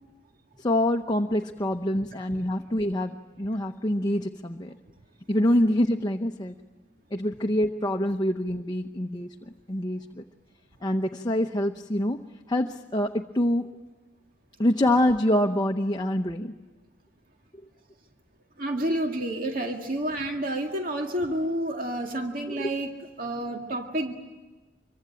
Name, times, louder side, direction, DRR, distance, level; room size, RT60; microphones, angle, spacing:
voice 1, 0.6-4.8 5.3-6.6 7.1-9.3 9.7-10.2 10.8-12.2 12.5-13.7 14.6-16.5 22.5-22.7, left 1 dB, 25° left, 4 dB, 0.9 m, -25 dB
voice 2, 18.6-22.9 23.2-24.1, right 1 dB, 55° right, 3 dB, 2.1 m, -29 dB
26.0 x 24.0 x 9.0 m, 1.2 s
head